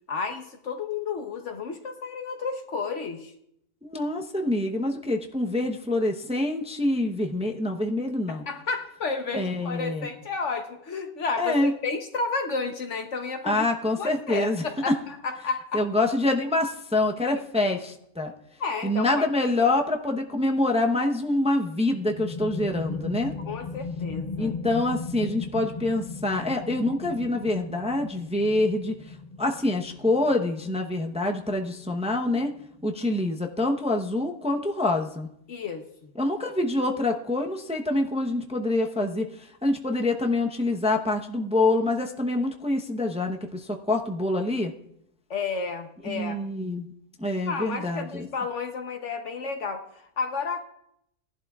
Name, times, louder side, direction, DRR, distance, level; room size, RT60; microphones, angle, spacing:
voice 1, 0.1-3.3 8.3-13.6 14.0-15.8 17.3-17.4 18.6-19.3 23.4-24.5 35.5-36.1 45.3-46.4 47.5-50.7, left 4 dB, 65° left, 5 dB, 1.2 m, -32 dB
voice 2, 3.9-8.4 9.3-10.1 11.4-11.7 13.4-15.0 15.7-18.3 18.8-23.3 24.4-32.5 32.8-35.3 36.2-39.3 39.6-44.7 46.1-46.9 47.2-48.3, left 2 dB, 5° right, 3 dB, 0.6 m, -26 dB
sound 1, 21.8-33.2, left 4 dB, 35° left, 1.1 m, -38 dB
19.0 x 11.5 x 2.4 m, 0.74 s
omnidirectional pair, 1.4 m